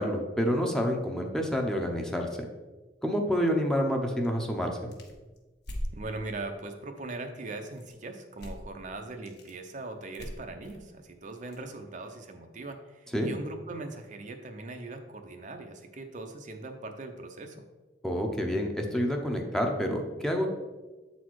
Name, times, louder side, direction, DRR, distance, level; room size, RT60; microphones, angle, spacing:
voice 1, 0.0-2.3 3.0-4.9 13.1-13.3 18.0-20.5, equal, 5° left, 2 dB, 0.8 m, -28 dB
sound 1, 4.2-6.0 7.7-8.1 8.4-8.7 9.0-9.6 10.1-11.6, equal, 70° left, 1.3 m, -40 dB
voice 2, 5.9-17.6, right 2 dB, 45° right, 5 dB, 0.7 m, -40 dB
8.2 x 4.2 x 4.6 m, 1.2 s
head